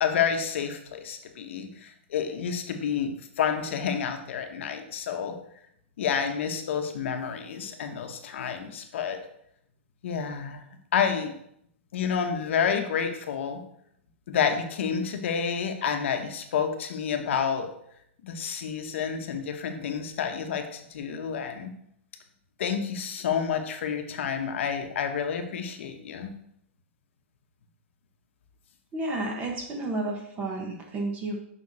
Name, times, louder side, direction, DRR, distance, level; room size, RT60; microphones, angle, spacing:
voice 1, 0.0-5.4 6.0-9.2 10.0-10.6 10.9-11.3 11.9-13.6 14.3-17.7 18.2-21.7 22.6-26.3, left 7 dB, 70° left, 5 dB, 1.1 m, -29 dB
voice 2, 28.9-31.4, right 2 dB, 20° right, 2 dB, 1.4 m, -31 dB
6.8 x 5.5 x 4.2 m, 0.72 s
hypercardioid pair, 150°, 7 cm